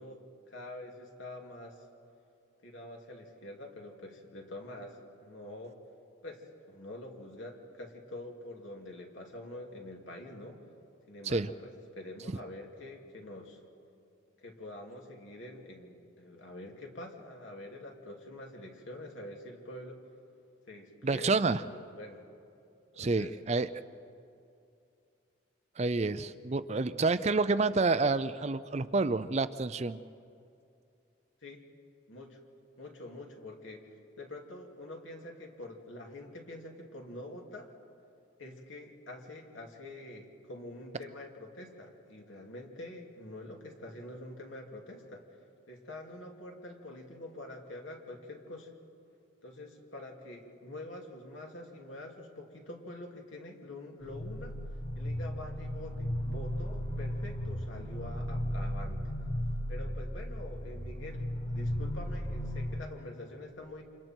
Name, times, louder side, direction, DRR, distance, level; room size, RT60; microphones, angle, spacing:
voice 1, 0.0-1.8 2.6-5.8 6.2-10.6 11.1-13.6 14.4-20.0 20.7-22.2 22.9-23.3 31.4-31.6 32.1-32.4 32.8-33.8 34.2-37.7 38.4-45.3 45.7-48.7 49.4-54.6 55.0-59.0 59.7-61.2 61.5-63.8, left 1 dB, 75° left, 1 dB, 2.8 m, -46 dB
voice 2, 21.0-21.6 23.0-23.7 25.8-30.0, right 3 dB, 35° right, 13 dB, 0.5 m, -28 dB
sound 1, 54.0-62.8, equal, 45° left, 5.1 m, -35 dB
29.0 x 27.0 x 4.5 m, 2.5 s
head